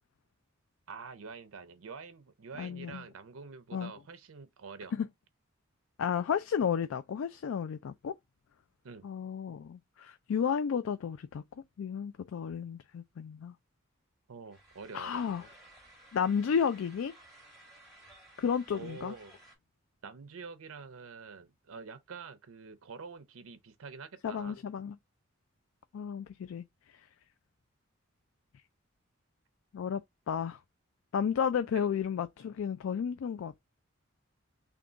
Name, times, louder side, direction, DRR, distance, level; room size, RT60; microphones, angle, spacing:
voice 1, 0.9-4.9 8.8-9.1 14.3-15.2 18.7-19.3 20.0-24.6 31.7-31.9, right 5 dB, 85° right, 0.6 m, -46 dB
voice 2, 2.6-3.0 3.7-3.9 5.0-5.1 6.0-8.2 9.0-11.4 11.8-13.5 14.9-15.4 16.1-17.1 18.4-19.1 24.2-25.0 25.9-26.6 29.7-30.0 30.3-30.6 31.1-33.6, left 7 dB, 70° left, 0.3 m, -32 dB
sound 1, 14.5-19.5, right 1 dB, ahead, 1.4 m, -57 dB
3.6 x 2.3 x 3.8 m
head